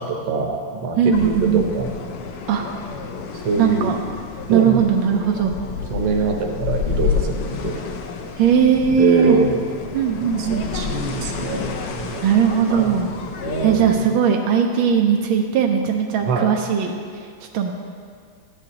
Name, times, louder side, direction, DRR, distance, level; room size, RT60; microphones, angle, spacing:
voice 1, 0.0-1.9 2.8-3.0 3.4-3.9 4.5-4.8 5.9-7.8 9.0-9.6 10.2-12.2 12.7-12.9 13.4-14.1 16.2-16.5, right 4 dB, 65° right, 2 dB, 1.5 m, -24 dB
voice 2, 1.0-1.7 2.5-2.7 3.6-4.0 4.5-5.5 8.4-9.4 9.9-10.6 12.2-13.1 13.6-17.0 17.5-17.7, right 7 dB, 85° right, 2 dB, 1.4 m, -18 dB
sound 1, 1.1-14.0, left 5 dB, 65° left, 1.0 m, -30 dB
11.5 x 9.0 x 2.9 m, 2.1 s
omnidirectional pair, 2.2 m